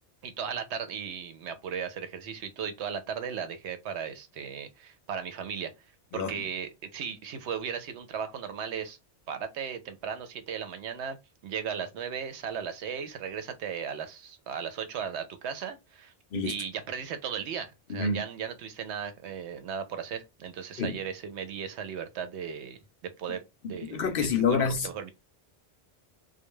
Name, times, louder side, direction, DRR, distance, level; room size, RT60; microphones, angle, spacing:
voice 1, 0.2-5.7 6.1-9.0 9.3-11.2 11.4-16.1 16.4-22.8 23.2-23.4 23.7-25.1, right 7 dB, 85° right, 0.9 m, -36 dB
voice 2, 17.9-18.2 20.8-21.0 23.6-24.9, left 5 dB, 65° left, 0.7 m, -27 dB
2.3 x 2.1 x 2.9 m
omnidirectional pair, 1.1 m